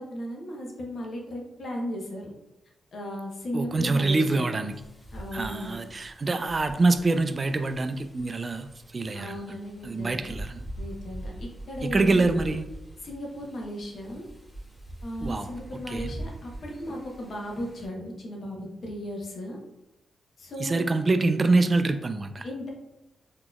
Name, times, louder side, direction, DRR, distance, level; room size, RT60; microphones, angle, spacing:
voice 1, 0.0-2.3 2.9-4.4 5.1-5.8 9.1-10.2 10.8-12.3 13.0-14.2 15.0-19.6 20.4-20.9 22.4-22.7, equal, 60° left, 0 dB, 0.9 m, -36 dB
voice 2, 3.5-4.7 5.3-9.4 9.8-10.6 11.8-12.7 15.2-15.5 15.9-16.1 20.6-22.5, right 3 dB, 40° right, 9 dB, 0.3 m, -25 dB
Wind, 4.7-17.9, right 1 dB, 30° left, 1.1 m, -43 dB
4.0 x 2.9 x 2.3 m, 0.92 s
supercardioid pair, 55°, 0 cm